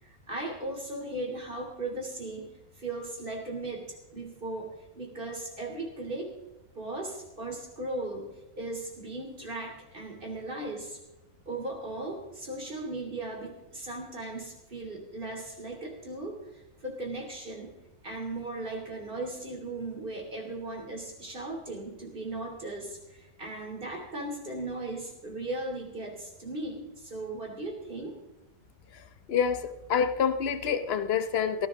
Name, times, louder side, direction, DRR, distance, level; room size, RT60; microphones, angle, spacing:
voice 1, 0.0-2.5 2.8-4.7 4.9-6.3 6.7-8.3 8.6-11.0 11.5-17.7 18.0-28.1, right 2 dB, 55° right, 1 dB, 3.3 m, -37 dB
voice 2, 29.3-31.7, left 7 dB, 70° left, 11 dB, 1.1 m, -27 dB
17.5 x 15.5 x 3.7 m, 0.97 s
omnidirectional pair, 1.1 m